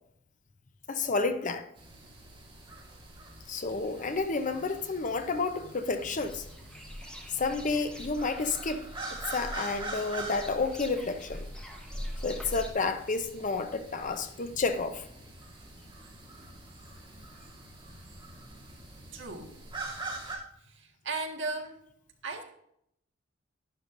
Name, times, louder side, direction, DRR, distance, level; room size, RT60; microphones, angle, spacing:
voice 1, 0.9-1.7 3.5-6.5 7.3-8.9 9.3-11.5 12.2-15.0, left 4 dB, 40° left, 0.7 m, -30 dB
sound 1, 1.8-20.4, right 2 dB, 25° right, 2.8 m, -44 dB
sound 2, 6.1-12.7, equal, 5° left, 1.3 m, -43 dB
voice 2, 19.1-19.5 20.6-21.8 22.2-22.4, right 3 dB, 65° right, 1.6 m, -36 dB
11.5 x 11.5 x 2.6 m
head